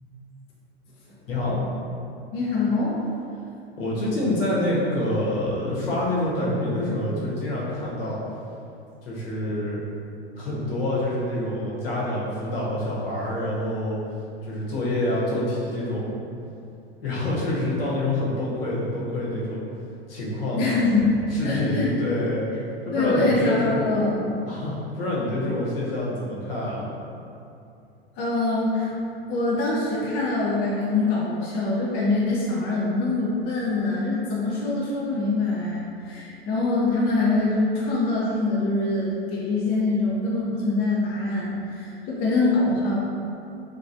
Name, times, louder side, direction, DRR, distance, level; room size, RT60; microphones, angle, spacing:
voice 1, 1.2-1.6 3.8-8.2 9.0-9.8 10.4-14.0 14.4-16.1 17.0-19.6 20.1-20.8 21.3-22.5 22.8-23.9 24.5-26.9, left 1 dB, 65° left, -7 dB, 0.9 m, -27 dB
voice 2, 2.3-3.0 20.6-21.1 21.4-22.0 22.9-24.4 28.2-29.0 29.3-43.0, left 2 dB, 35° left, -5 dB, 0.4 m, -24 dB
2.9 x 2.2 x 2.5 m, 2.6 s
figure-of-eight pair, 85°, 31 cm